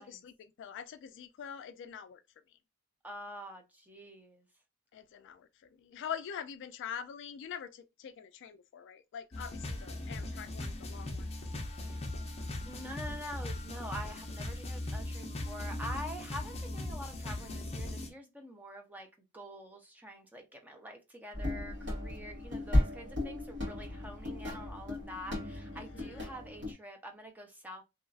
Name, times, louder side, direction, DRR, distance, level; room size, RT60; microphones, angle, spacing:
voice 1, 0.0-2.2 4.9-11.3 25.7-26.3, left 8 dB, 55° left, 0.3 m, -44 dB
voice 2, 3.0-4.4 12.7-19.1 19.3-27.8, equal, 10° right, 0.6 m, -46 dB
sound 1, 9.3-18.1, left 1 dB, 30° left, 0.7 m, -39 dB
sound 2, 21.3-26.7, left 1 dB, 55° right, 1.7 m, -34 dB
3.0 x 2.5 x 2.3 m
head